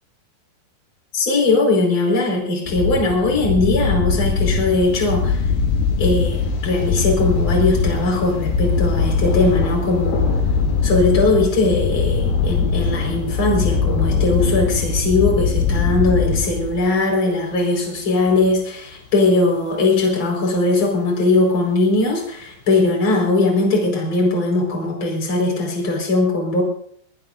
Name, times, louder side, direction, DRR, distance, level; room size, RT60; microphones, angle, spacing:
voice 1, 1.1-5.5 6.0-10.3 10.8-26.6, left 2 dB, 25° left, -1 dB, 5.2 m, -19 dB
sound 1, 2.7-16.9, left 5 dB, 70° left, 2.1 m, -21 dB
Thunder, 4.8-22.8, left 3 dB, 55° left, 4.5 m, -36 dB
23.0 x 20.0 x 2.6 m, 0.65 s
omnidirectional pair, 5.6 m